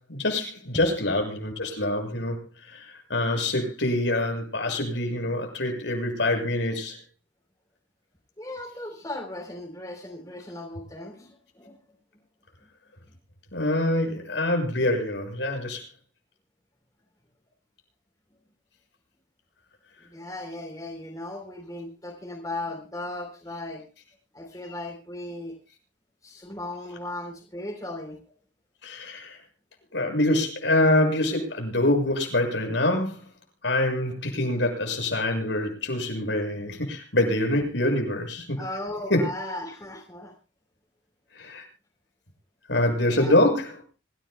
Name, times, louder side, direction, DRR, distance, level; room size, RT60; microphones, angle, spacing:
voice 1, 0.1-7.0 13.5-15.8 28.8-29.4 29.9-33.3 33.6-38.6 39.1-39.3 41.3-41.6 42.7-43.7, left 1 dB, 75° left, 2 dB, 7.2 m, -25 dB
voice 2, 8.4-11.8 20.0-23.8 24.3-25.6 26.2-28.2 38.6-40.3 43.1-43.4, left 1 dB, 20° left, 2 dB, 3.6 m, -37 dB
26.0 x 16.5 x 2.3 m, 0.35 s
head